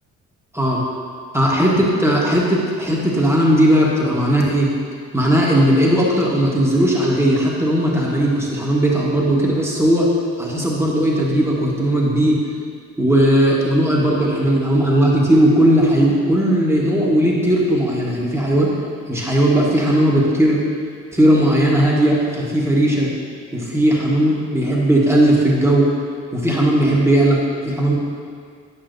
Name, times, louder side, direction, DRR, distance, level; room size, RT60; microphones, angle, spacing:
voice 1, 1.3-4.7 5.1-10.1 10.4-12.4 13.0-18.7 19.1-20.6 21.1-23.1 23.5-25.9 26.3-27.9, right 1 dB, 10° right, -5 dB, 1.2 m, -17 dB
9.7 x 5.5 x 2.6 m, 2.1 s
cardioid pair, 90°, 30 cm